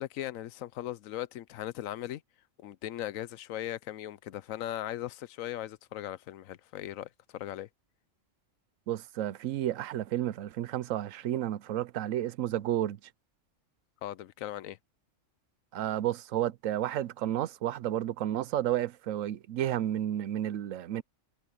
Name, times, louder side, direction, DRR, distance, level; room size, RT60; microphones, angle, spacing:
voice 1, 0.0-2.2 2.6-7.7 14.0-14.8, left 13 dB, 90° left, 1.0 m, -38 dB
voice 2, 8.9-13.0 15.7-21.0, right 12 dB, 80° right, 1.0 m, -31 dB
omnidirectional pair, 1.4 m